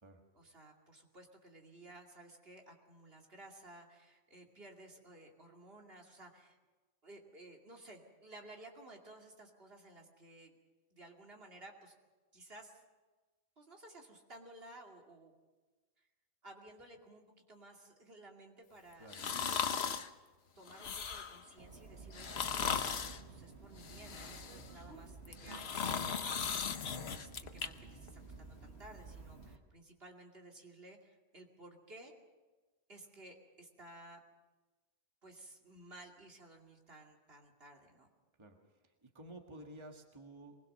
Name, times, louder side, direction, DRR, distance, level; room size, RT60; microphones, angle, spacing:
voice 1, 0.3-6.6 7.0-10.6 10.9-11.9 12.3-12.8 13.6-15.3 16.0-16.1 16.4-19.7 20.6-32.1 32.9-34.2 35.2-38.1, right 1 dB, 65° right, 1 dB, 2.7 m, -56 dB
sound 1, 19.1-20.1 20.7-21.4 22.1-23.2 23.8-24.7 25.2-27.7 28.1-28.2, left 6 dB, 75° left, 1.2 m, -37 dB
Subway metro underground, 21.6-29.6, right 4 dB, 90° right, 1.9 m, -52 dB
voice 2, 39.0-40.6, right 1 dB, 25° right, 3 dB, 1.7 m, -52 dB
23.0 x 20.0 x 6.6 m, 1.3 s
omnidirectional pair, 1.1 m